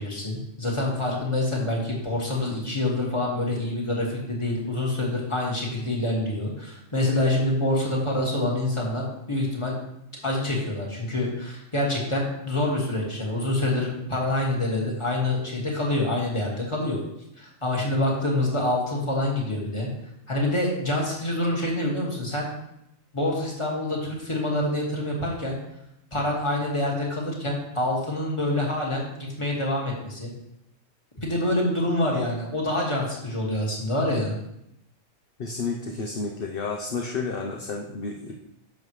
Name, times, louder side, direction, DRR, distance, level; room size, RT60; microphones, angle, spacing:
voice 1, 0.0-9.8 10.2-17.0 17.4-19.9 20.3-22.5 23.1-25.6 26.1-29.1 29.4-30.3 31.2-34.3, left 1 dB, 20° left, -3 dB, 2.1 m, -26 dB
voice 2, 35.4-38.3, left 4 dB, 50° left, 1 dB, 1.0 m, -31 dB
10.5 x 7.1 x 3.2 m, 0.83 s
omnidirectional pair, 1.4 m